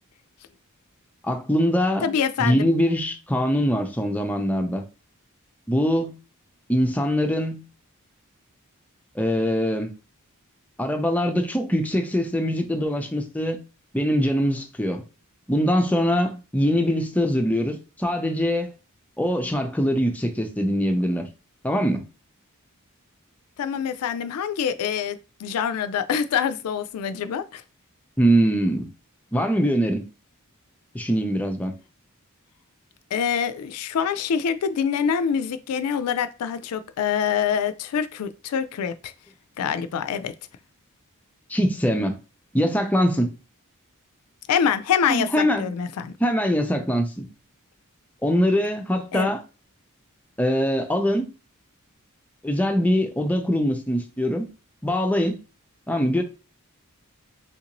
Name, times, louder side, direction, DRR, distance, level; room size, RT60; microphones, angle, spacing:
voice 1, 1.2-2.1 2.4-4.8 5.7-6.1 6.7-7.6 9.2-9.9 10.8-13.6 13.9-15.0 15.5-18.7 19.2-21.3 21.6-22.0 28.2-28.9 29.3-30.1 30.9-31.8 41.5-42.2 42.5-43.3 45.1-45.7 46.2-47.2 48.2-49.4 50.4-51.3 52.4-54.5 54.8-55.4 55.9-56.2, equal, 5° left, 0.4 m, -23 dB
voice 2, 2.0-2.7 23.6-27.6 33.1-39.1 39.6-40.3 44.5-46.1 49.1-49.3, left 7 dB, 85° left, 0.4 m, -25 dB
3.5 x 2.6 x 2.9 m
head